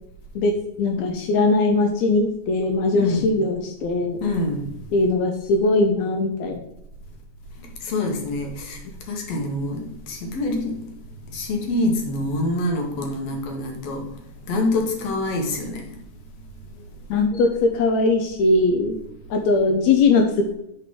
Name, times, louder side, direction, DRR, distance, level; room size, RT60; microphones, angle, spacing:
voice 1, 0.8-4.2 4.9-6.6 17.1-19.0 19.3-20.5, left 3 dB, 80° left, 1.6 m, -20 dB
voice 2, 3.0-3.3 4.2-4.9 7.6-8.8 9.1-10.9 11.3-16.0 16.8-16.9 17.1-17.3, left 2 dB, 60° left, 2.0 m, -26 dB
11.0 x 4.1 x 3.6 m
omnidirectional pair, 4.1 m